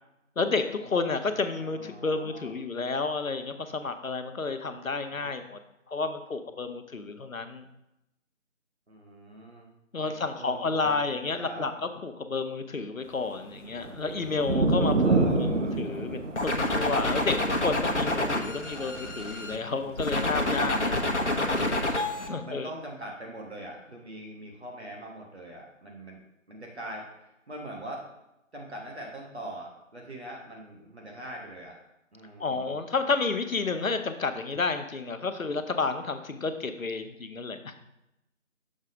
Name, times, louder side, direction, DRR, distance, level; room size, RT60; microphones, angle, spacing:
voice 1, 0.4-5.6 5.9-7.7 9.9-15.1 15.4-15.5 15.8-21.0 21.9-22.7 32.4-37.7, left 4 dB, 90° left, 8 dB, 0.8 m, -31 dB
voice 2, 1.6-2.5 5.1-5.4 8.9-9.7 10.0-11.7 15.0-15.8 18.6-19.0 20.3-21.6 22.4-26.2 26.5-28.1 28.5-31.8 32.1-32.8, right 1 dB, 55° right, -1 dB, 1.3 m, -42 dB
sound 1, 13.4-20.0 20.9-21.0, right 3 dB, 70° right, 0.9 m, -28 dB
sound 2, 16.4-19.6 20.0-22.3, left 1 dB, 60° left, 0.9 m, -28 dB
6.4 x 3.5 x 5.2 m, 0.88 s
figure-of-eight pair, 160°, 39 cm